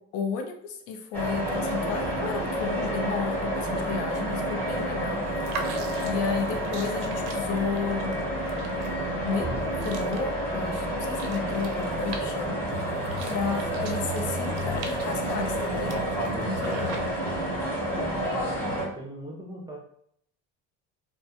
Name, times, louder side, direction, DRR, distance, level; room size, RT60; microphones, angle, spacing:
voice 1, 0.1-5.2 6.0-8.1 9.2-9.5 9.8-12.6 13.3-15.9 16.4-17.1, left 5 dB, 80° left, 4 dB, 0.6 m, -32 dB
sound 1, 1.1-18.9, right 1 dB, 5° left, 0.8 m, -29 dB
sound 2, 5.2-17.4, right 4 dB, 90° right, 0.5 m, -44 dB
voice 2, 16.5-16.9 18.8-19.8, right 1 dB, 10° right, -1 dB, 0.4 m, -41 dB
2.2 x 2.1 x 2.8 m, 0.67 s
cardioid pair, 150°, 31 cm